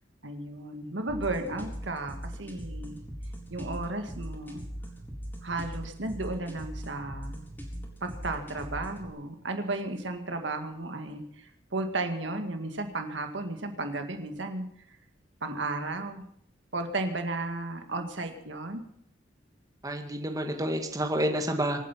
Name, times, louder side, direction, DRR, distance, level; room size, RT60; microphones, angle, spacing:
voice 1, 0.2-3.0 3.5-4.6 5.4-7.4 8.0-14.7 15.4-16.2 16.7-18.8, right 2 dB, 80° right, 6 dB, 2.0 m, -34 dB
sound 1, 1.1-9.1, equal, 10° left, 4.4 m, -40 dB
voice 2, 19.8-21.8, equal, 20° right, 4 dB, 1.9 m, -29 dB
25.5 x 9.3 x 5.8 m, 0.70 s
head